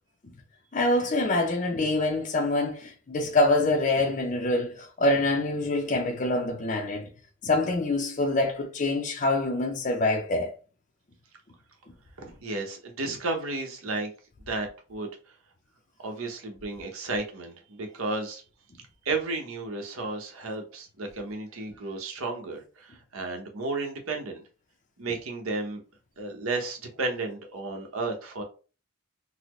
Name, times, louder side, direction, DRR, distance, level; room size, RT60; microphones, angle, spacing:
voice 1, 0.7-7.1 7.4-10.5, left 2 dB, 35° left, 0.4 m, -25 dB
voice 2, 12.2-14.1 14.5-15.1 16.0-18.4 19.0-24.4 25.0-25.8 26.2-28.4, right 3 dB, 85° right, 0.9 m, -33 dB
4.0 x 2.0 x 3.0 m
head